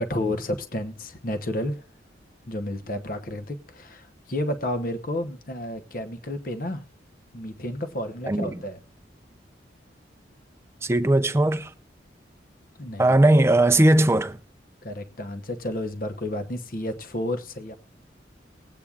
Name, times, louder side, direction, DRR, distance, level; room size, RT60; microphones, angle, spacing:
voice 1, 0.0-1.8 2.5-6.8 7.3-8.8 12.8-13.1 14.8-17.7, left 1 dB, 45° left, 0.8 m, -31 dB
voice 2, 8.3-8.6 10.8-11.7 13.0-14.4, right 1 dB, 15° right, 0.4 m, -19 dB
20.0 x 8.5 x 2.4 m
head